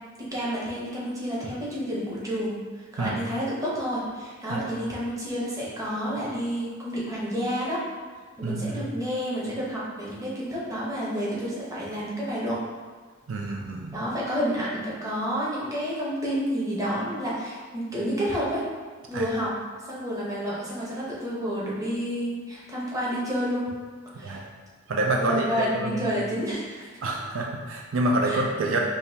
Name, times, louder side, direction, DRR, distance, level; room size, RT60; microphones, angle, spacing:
voice 1, 0.3-2.5 2.9-7.8 8.4-12.6 13.9-18.6 19.1-19.5 19.9-23.6 24.2-24.4 25.2-27.1 28.2-28.4, equal, 15° right, -7 dB, 0.9 m, -29 dB
voice 2, 8.4-8.8 13.3-14.0 19.1-19.3 24.2-24.5 24.9-25.5 25.7-26.1 27.0-28.8, right 2 dB, 75° right, 0 dB, 0.4 m, -27 dB
5.1 x 2.3 x 2.7 m, 1.5 s
head